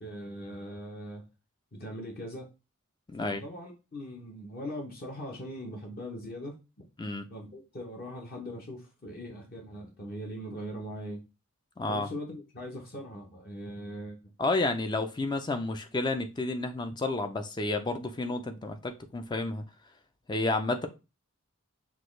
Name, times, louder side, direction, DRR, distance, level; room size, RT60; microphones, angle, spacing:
voice 1, 0.0-1.2 1.7-2.5 3.2-6.6 7.3-11.2 11.9-14.2, equal, 40° left, 1 dB, 0.8 m, -40 dB
voice 2, 11.8-12.1 14.4-19.6 20.3-20.9, left 2 dB, 20° left, 7 dB, 0.4 m, -31 dB
6.0 x 2.3 x 3.2 m, 0.28 s
head